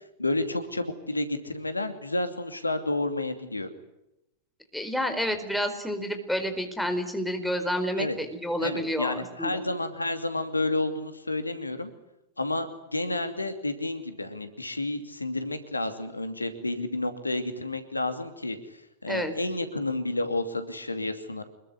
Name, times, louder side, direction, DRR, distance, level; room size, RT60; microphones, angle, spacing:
voice 1, 0.2-3.7 8.0-8.2 8.6-11.9 12.4-12.7 12.9-18.6 19.0-21.4, left 2 dB, 80° left, 8 dB, 2.6 m, -30 dB
voice 2, 4.7-9.6 19.1-19.3, equal, ahead, 5 dB, 4.6 m, -29 dB
26.0 x 21.5 x 9.9 m, 0.87 s
figure-of-eight pair, 90°, 0 cm